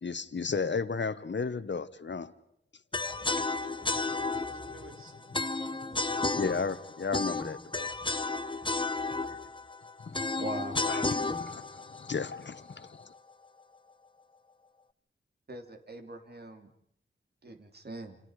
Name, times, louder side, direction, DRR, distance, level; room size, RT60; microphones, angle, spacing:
voice 1, 0.0-2.3 3.4-3.5 6.3-8.2 9.3-9.4 10.0-10.2 10.8-13.1, left 5 dB, 65° left, 14 dB, 1.3 m, -34 dB
sound 1, 2.9-13.0, left 3 dB, 25° left, 1.1 m, -33 dB
voice 2, 3.0-4.0 4.3-5.3 5.7-6.1, right 3 dB, 85° right, 6 dB, 4.1 m, -55 dB
voice 3, 10.4-10.8 15.5-16.7 17.4-18.2, right 2 dB, 50° right, 6 dB, 3.4 m, -41 dB
29.0 x 29.0 x 5.0 m, 0.72 s
wide cardioid pair, 95°, 21 cm